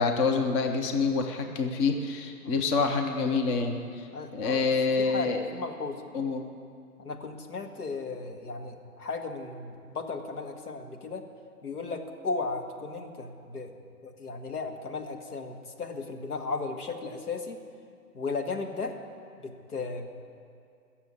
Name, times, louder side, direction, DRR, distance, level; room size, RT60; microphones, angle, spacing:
voice 1, 0.0-4.1 4.3-5.4 6.1-6.4, left 4 dB, 20° left, 4 dB, 0.7 m, -27 dB
voice 2, 4.1-4.6 5.0-6.0 7.0-11.3 11.6-13.7 14.0-17.6 18.1-19.0 19.4-20.1, left 4 dB, 75° left, 4 dB, 1.9 m, -35 dB
20.5 x 7.0 x 8.4 m, 2.3 s
figure-of-eight pair, 130°, 45 cm